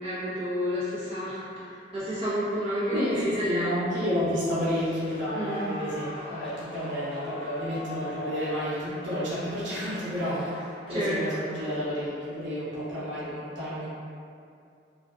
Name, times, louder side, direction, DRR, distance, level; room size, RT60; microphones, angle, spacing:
voice 1, 0.0-3.7 5.3-5.7 10.9-11.4, equal, 35° right, -13 dB, 0.9 m, -30 dB
voice 2, 2.9-13.9, equal, 85° right, -11 dB, 0.8 m, -31 dB
Clapping / Cheering / Applause, 5.0-12.3, left 1 dB, 30° left, 0.5 m, -42 dB
2.5 x 2.3 x 2.4 m, 2.5 s
head